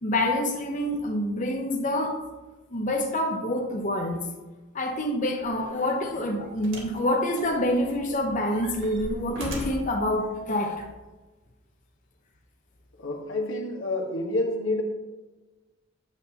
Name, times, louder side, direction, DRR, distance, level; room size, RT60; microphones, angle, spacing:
voice 1, 0.0-2.2 2.7-4.2 4.7-10.9, left 1 dB, 40° left, 1 dB, 0.8 m, -27 dB
sound 1, 5.4-5.6 6.6-7.0 7.4-8.1 8.5-10.0 10.8-10.9, equal, 80° right, 1.9 m, -37 dB
voice 2, 13.0-14.8, left 2 dB, 85° left, 2 dB, 1.2 m, -28 dB
9.0 x 7.1 x 2.8 m, 1.2 s
head